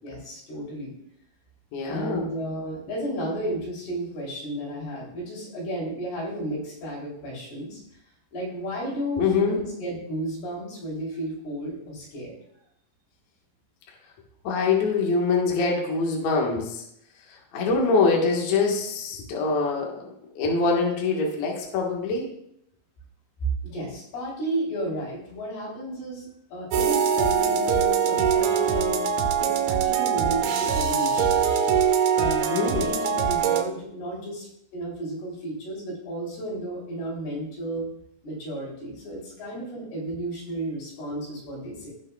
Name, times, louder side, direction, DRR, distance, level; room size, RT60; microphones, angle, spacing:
voice 1, 0.0-0.9 1.9-7.8 8.3-12.3 23.6-29.1 29.4-31.4 32.2-34.5 34.7-37.9 38.2-41.9, right 1 dB, 85° left, -4 dB, 5.2 m, -33 dB
voice 2, 1.7-2.3 9.2-9.6 14.4-16.8 17.3-22.3 32.5-32.9, left 4 dB, 55° left, -1 dB, 2.4 m, -24 dB
sound 1, 26.7-33.6, right 7 dB, 85° right, 2.7 m, -23 dB
17.0 x 6.6 x 2.3 m, 0.75 s
omnidirectional pair, 4.4 m